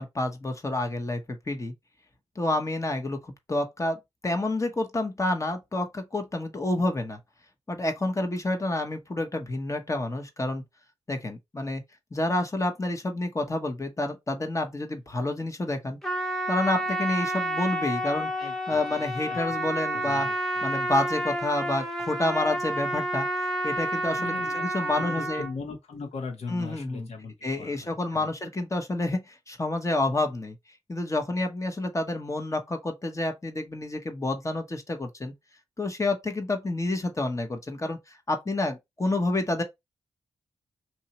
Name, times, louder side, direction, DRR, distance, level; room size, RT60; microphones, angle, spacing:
voice 1, 0.0-1.7 2.3-7.2 7.7-10.6 11.1-11.8 12.1-16.0 16.5-18.3 18.7-20.3 20.6-25.4 26.5-27.1 27.4-30.5 30.9-35.3 35.8-39.6, left 2 dB, 25° left, 1.2 m, -29 dB
Trumpet, 16.0-25.5, right 1 dB, 5° left, 1.1 m, -30 dB
voice 2, 18.4-19.0 19.3-19.4 19.9-20.7 24.2-28.3, left 4 dB, 75° left, 1.4 m, -40 dB
2.9 x 2.7 x 4.2 m
cardioid pair, 55°, 11 cm